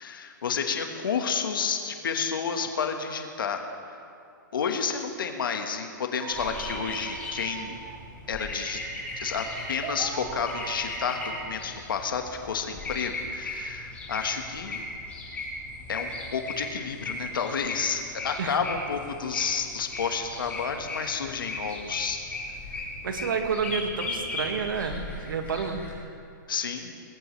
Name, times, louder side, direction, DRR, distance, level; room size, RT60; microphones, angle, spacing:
voice 1, 0.0-3.6 4.5-7.8 8.3-8.8 9.2-14.8 15.9-22.3 26.5-26.9, left 6 dB, 90° left, 4 dB, 1.6 m, -30 dB
sound 1, 6.2-12.8, right 8 dB, 30° right, 0.8 m, -42 dB
sound 2, 6.3-26.0, left 2 dB, 15° left, 3.9 m, -37 dB
voice 2, 22.7-25.8, right 5 dB, 80° right, 5 dB, 2.0 m, -30 dB
20.5 x 18.5 x 3.3 m, 2.4 s
hypercardioid pair, 150°, 11 cm